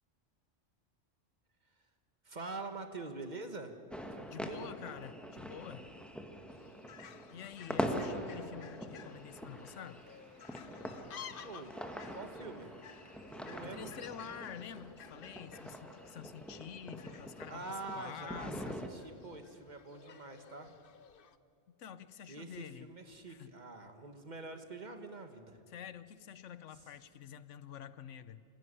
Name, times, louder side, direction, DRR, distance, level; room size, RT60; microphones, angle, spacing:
voice 1, 2.2-3.8 4.1-4.7 11.4-11.7 12.1-12.7 13.3-13.9 17.5-20.7 22.3-25.6, right 3 dB, 35° right, 7 dB, 1.6 m, -45 dB
sound 1, 3.9-18.9, equal, ahead, 1.5 m, -43 dB
voice 2, 4.3-5.9 7.3-10.0 13.2-18.8 21.8-22.9 23.3-23.5 25.7-28.4, left 9 dB, 80° left, 15 dB, 1.1 m, -48 dB
Fowl, 6.5-21.4, left 8 dB, 55° left, 0.9 m, -55 dB
Applause / Crowd, 8.5-15.1, equal, 20° right, 6.0 m, -68 dB
26.0 x 16.5 x 9.9 m, 2.5 s
omnidirectional pair, 1.2 m